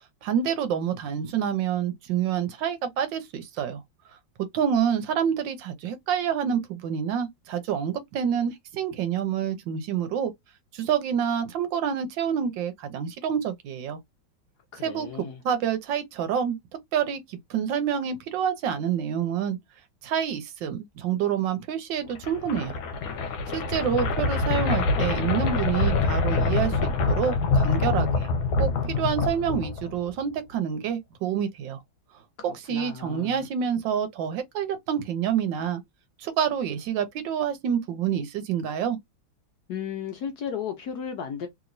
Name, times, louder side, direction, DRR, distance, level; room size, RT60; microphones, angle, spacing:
voice 1, 0.2-3.8 4.4-10.3 10.7-14.0 14.8-15.1 15.4-16.6 16.9-19.6 20.0-22.8 23.5-28.3 28.6-31.8 32.4-35.8 36.2-39.0, right 8 dB, 70° right, 1.3 m, -27 dB
voice 2, 14.7-15.4 32.4-33.4 39.7-41.5, left 7 dB, 70° left, 1.0 m, -34 dB
sound 1, 22.1-30.1, left 3 dB, 85° left, 1.4 m, -25 dB
3.2 x 2.9 x 2.5 m
omnidirectional pair, 2.2 m